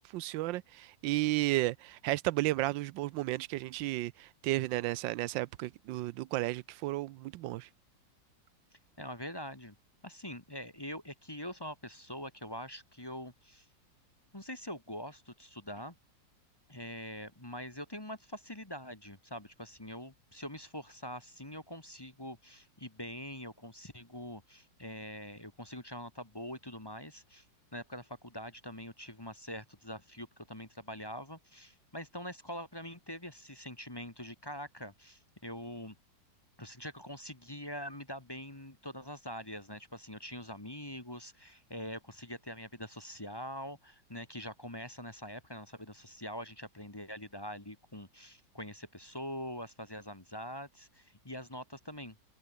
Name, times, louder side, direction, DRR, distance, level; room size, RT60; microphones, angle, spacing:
voice 1, 0.0-7.7, right 17 dB, 85° right, 1.3 m, -33 dB
voice 2, 9.0-9.7 10.0-13.7 14.3-15.9 16.7-27.4 27.7-35.9 36.6-52.2, equal, 15° left, 1.6 m, -44 dB
omnidirectional pair, 2.0 m